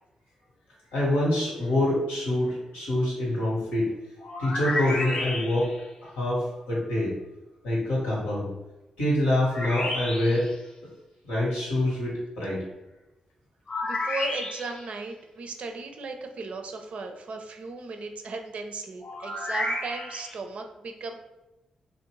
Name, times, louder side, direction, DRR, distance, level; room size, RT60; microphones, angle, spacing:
voice 1, 0.9-3.9 4.4-5.7 6.0-7.2 7.6-8.5 9.0-10.5 11.2-12.6, left 1 dB, 90° left, -5 dB, 1.0 m, -26 dB
sound 1, 4.2-5.9 9.4-10.6 13.7-14.9 19.0-20.4, left 2 dB, 40° left, 0.5 m, -32 dB
voice 2, 13.8-21.2, right 3 dB, 65° right, 4 dB, 0.4 m, -36 dB
2.6 x 2.0 x 3.0 m, 1.0 s
hypercardioid pair, 40°, 2 cm